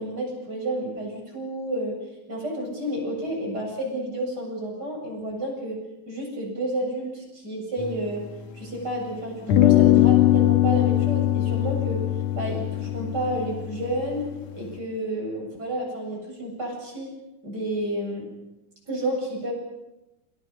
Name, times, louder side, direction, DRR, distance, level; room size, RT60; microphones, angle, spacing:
voice 1, 0.0-2.0 2.3-5.8 6.1-8.3 8.5-12.0 12.3-14.3 14.5-17.1 17.4-18.3 18.9-19.5, right 1 dB, 25° right, 1 dB, 8.3 m, -30 dB
sound 1, 7.8-9.0 9.5-14.7, left 14 dB, 60° left, 2.1 m, -22 dB
29.0 x 27.5 x 5.8 m, 0.96 s
omnidirectional pair, 4.1 m